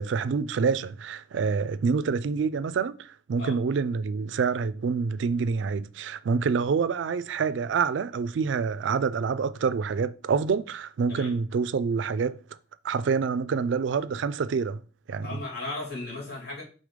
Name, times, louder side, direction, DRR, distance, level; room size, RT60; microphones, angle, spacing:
voice 1, 0.0-12.4 12.8-14.8 15.1-15.3, right 5 dB, 65° right, 0.3 m, -27 dB
voice 2, 15.2-16.6, left 2 dB, 55° left, 2.5 m, -36 dB
5.1 x 3.7 x 5.0 m
head